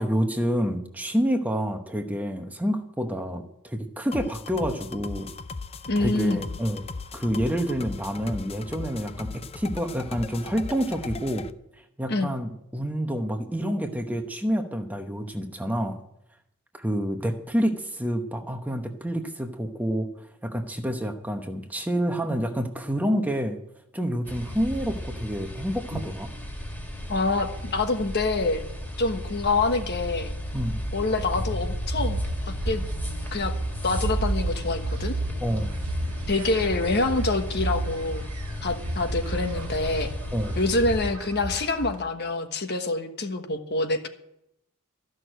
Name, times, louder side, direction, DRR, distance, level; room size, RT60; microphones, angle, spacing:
voice 1, 0.0-5.3 6.0-6.8 7.1-11.5 12.0-16.0 16.8-23.6 23.9-26.3 30.5-30.8 35.4-35.7 40.3-40.6, equal, 5° right, 5 dB, 0.9 m, -28 dB
sound 1, 4.1-11.5, left 4 dB, 25° left, 0.5 m, -38 dB
voice 2, 5.9-6.5 12.1-12.3 27.1-28.6 29.0-30.3 30.9-32.2 32.5-32.8 33.3-33.5 33.8-35.2 36.3-38.2 38.6-40.1 40.6-44.1, left 2 dB, 50° left, 6 dB, 1.3 m, -26 dB
sound 2, 24.2-41.1, equal, 10° left, 2.1 m, -33 dB
sound 3, 31.9-42.0, right 2 dB, 80° right, 1.2 m, -33 dB
14.0 x 6.4 x 9.0 m, 0.79 s
head